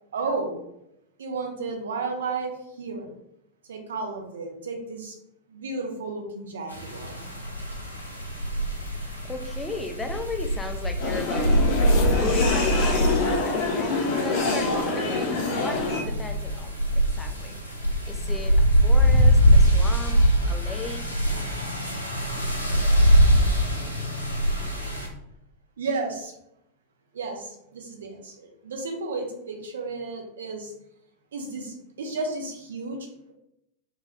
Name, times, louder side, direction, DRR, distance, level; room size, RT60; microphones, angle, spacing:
voice 1, 0.1-0.6 1.2-3.1 3.6-5.2 5.5-7.3 25.8-26.3 27.1-30.7 31.3-33.3, right 3 dB, 65° right, 3 dB, 0.5 m, -33 dB
sound 1, 6.7-25.1, equal, 90° left, 0.5 m, -23 dB
voice 2, 9.2-13.9 14.2-17.6 18.1-20.2 20.5-21.2, left 3 dB, 10° left, 6 dB, 0.3 m, -36 dB
sound 2, 11.0-16.0, left 3 dB, 45° left, 0.6 m, -25 dB
2.2 x 2.2 x 3.5 m, 0.82 s
figure-of-eight pair, 90°, 0 cm